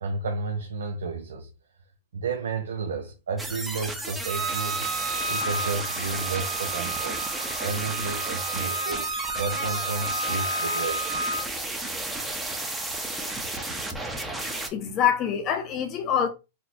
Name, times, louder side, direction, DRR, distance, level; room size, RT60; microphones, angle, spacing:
voice 1, 0.0-1.5 2.1-4.9 5.3-11.2, right 4 dB, 90° right, 0.5 m, -32 dB
sound 1, 3.4-14.7, right 2 dB, 5° right, 0.6 m, -33 dB
Bowed string instrument, 4.2-11.4, right 2 dB, 35° right, 1.2 m, -32 dB
voice 2, 14.7-16.3, left 9 dB, 35° left, 0.7 m, -25 dB
4.3 x 2.0 x 2.5 m
hypercardioid pair, 120°, 0 cm